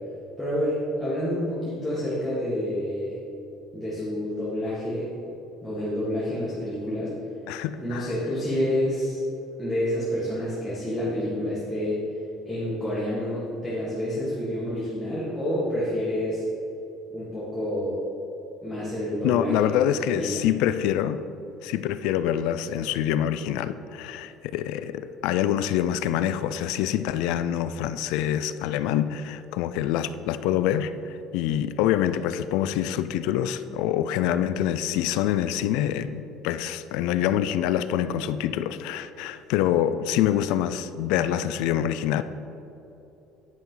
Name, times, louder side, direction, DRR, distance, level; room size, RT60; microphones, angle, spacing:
voice 1, 0.4-3.2 3.7-5.1 5.6-7.1 7.8-9.2 9.6-12.0 12.4-16.4 17.1-18.0 18.6-20.5, equal, ahead, -10 dB, 1.9 m, -28 dB
voice 2, 7.5-8.1 19.2-21.2 21.6-42.2, left 11 dB, 75° left, 13 dB, 0.5 m, -26 dB
10.5 x 9.8 x 4.0 m, 2.9 s
cardioid pair, 165°, 0 cm